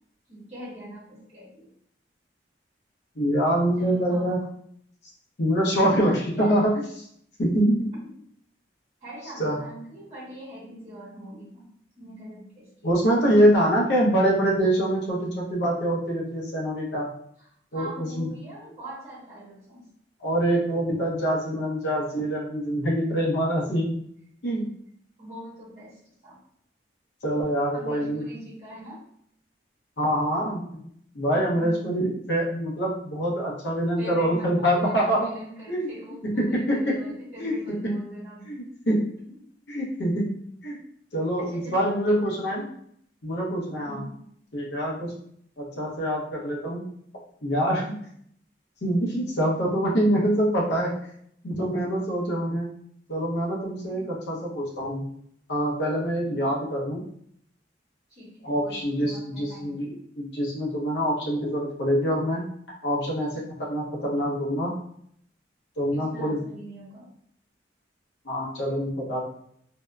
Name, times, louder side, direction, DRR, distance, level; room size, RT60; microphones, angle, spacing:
voice 1, 0.3-1.7 3.8-4.3 5.7-6.6 8.0-8.1 9.0-11.7 12.0-12.9 17.4-17.5 17.7-19.9 24.5-24.6 25.2-26.4 27.7-29.0 31.5-32.0 34.0-38.6 39.3-39.4 41.4-42.6 43.8-44.2 53.9-54.1 58.1-59.9 65.9-67.1, equal, 35° right, -7 dB, 1.1 m, -42 dB
voice 2, 3.2-4.4 5.4-6.7 7.4-7.9 9.4-9.6 12.8-17.1 17.7-18.3 20.2-23.9 24.4-24.7 27.2-28.2 30.0-30.9 31.1-35.3 35.7-35.9 36.2-37.0 37.4-37.9 38.5-39.0 39.7-40.3 40.6-40.8 41.1-42.6 43.2-44.0 44.5-45.1 45.6-46.8 47.4-47.9 48.8-50.9 51.4-52.7 53.1-55.1 55.5-57.0 58.4-62.4 62.8-64.7 65.8-66.4 68.2-69.3, equal, 75° left, -3 dB, 0.8 m, -25 dB
2.7 x 2.1 x 2.3 m, 0.66 s
head